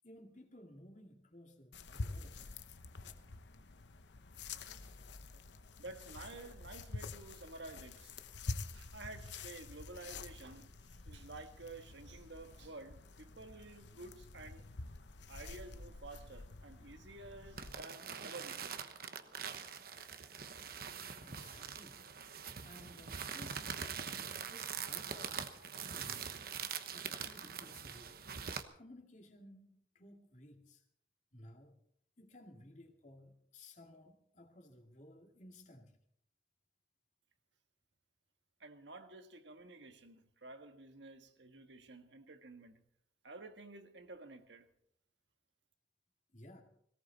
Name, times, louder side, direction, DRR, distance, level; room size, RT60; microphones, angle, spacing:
voice 1, 0.0-2.6 21.0-22.1 22.6-24.1 24.5-26.3 26.9-28.2 28.8-30.8 31.3-31.8 32.2-35.9 46.3-46.6, left 1 dB, 40° left, 2.3 m, -57 dB
sound 1, 1.7-17.7, left 3 dB, 75° left, 0.9 m, -48 dB
voice 2, 5.8-8.2 8.7-10.7 11.0-14.6 15.3-18.8 38.6-42.8 43.2-44.7, right 2 dB, 80° right, 1.6 m, -51 dB
sound 2, 17.6-28.6, right 7 dB, 55° right, 1.1 m, -43 dB
18.0 x 18.0 x 4.1 m
head